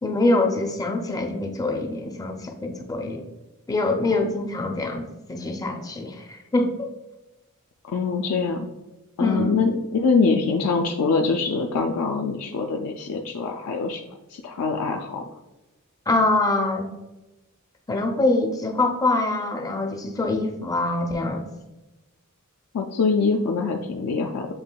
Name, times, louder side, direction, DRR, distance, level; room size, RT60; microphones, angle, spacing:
voice 1, 0.0-3.2 3.7-6.9 9.2-9.7 16.1-16.9 17.9-21.4, left 2 dB, 15° left, 4 dB, 0.4 m, -24 dB
voice 2, 7.9-8.7 9.2-14.0 14.3-15.3 22.7-24.5, left 4 dB, 80° left, 2 dB, 0.4 m, -24 dB
7.1 x 2.9 x 2.2 m, 1.0 s
head